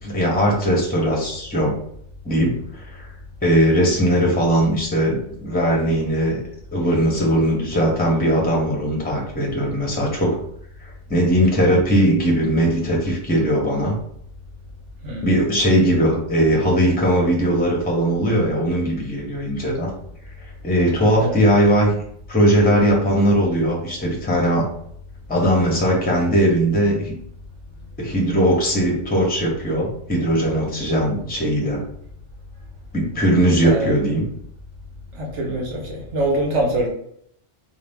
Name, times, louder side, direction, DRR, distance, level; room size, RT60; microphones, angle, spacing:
voice 1, 0.0-1.8 2.2-3.1 3.4-6.4 6.7-10.4 10.8-14.0 15.2-19.9 20.6-21.9 22.3-24.6 25.3-27.1 28.0-31.8 32.9-34.2, equal, 10° left, -2 dB, 0.8 m, -19 dB
voice 2, 21.1-21.5 33.6-33.9 35.1-36.9, right 1 dB, 75° right, 0 dB, 1.3 m, -24 dB
4.2 x 2.2 x 3.5 m, 0.67 s
omnidirectional pair, 1.2 m